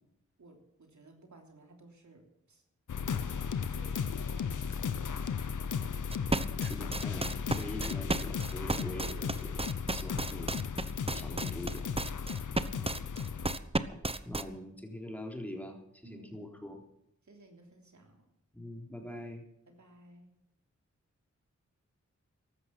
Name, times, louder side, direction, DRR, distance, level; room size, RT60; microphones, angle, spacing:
voice 1, 0.4-2.6 3.3-5.8 6.5-7.7 16.0-16.5 17.2-18.3 19.7-20.3, right 2 dB, 70° right, 2 dB, 3.2 m, -57 dB
sound 1, 2.9-13.6, left 6 dB, 85° left, 0.9 m, -35 dB
sound 2, 6.1-14.4, right 2 dB, 20° right, 0.9 m, -33 dB
voice 2, 6.6-9.5 9.9-10.5 11.0-11.9 13.9-14.0 14.3-16.8 18.5-19.4, left 1 dB, 5° left, 2 dB, 3.7 m, -43 dB
14.5 x 12.5 x 6.0 m, 0.81 s
cardioid pair, 55°, 30 cm